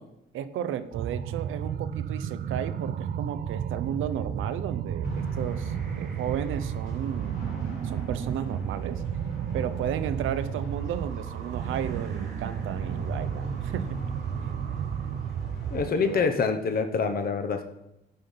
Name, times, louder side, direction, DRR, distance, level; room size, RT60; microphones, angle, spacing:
voice 1, 0.3-7.5 7.8-9.0 9.5-14.0 14.4-14.6 15.9-16.3, right 9 dB, 85° right, 13 dB, 0.7 m, -34 dB
sound 1, 0.9-15.9, right 8 dB, 50° right, 0.5 m, -32 dB
sound 2, 5.0-16.2, equal, 85° left, 2.5 m, -41 dB
voice 2, 15.7-17.6, left 5 dB, 50° left, 6 dB, 1.0 m, -26 dB
11.0 x 5.2 x 5.6 m, 0.88 s
cardioid pair, 90°, 20 cm